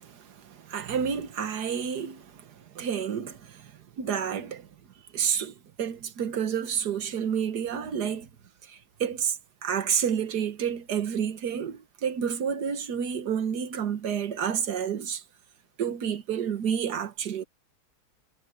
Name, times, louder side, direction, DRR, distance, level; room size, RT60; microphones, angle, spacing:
voice 1, 0.0-3.7 4.0-4.7 5.1-8.3 8.7-15.2 15.8-17.4, right 8 dB, 80° right, 1.8 m, -30 dB
omnidirectional pair, 1.7 m